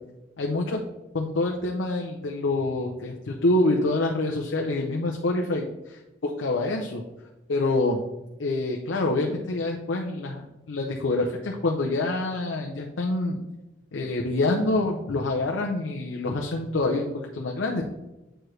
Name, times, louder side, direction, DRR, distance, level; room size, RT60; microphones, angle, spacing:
voice 1, 0.4-0.8 1.1-7.0 7.5-8.0 8.4-13.4 13.9-17.9, left 2 dB, 85° left, 1 dB, 0.6 m, -26 dB
7.5 x 4.7 x 3.2 m, 1.0 s
head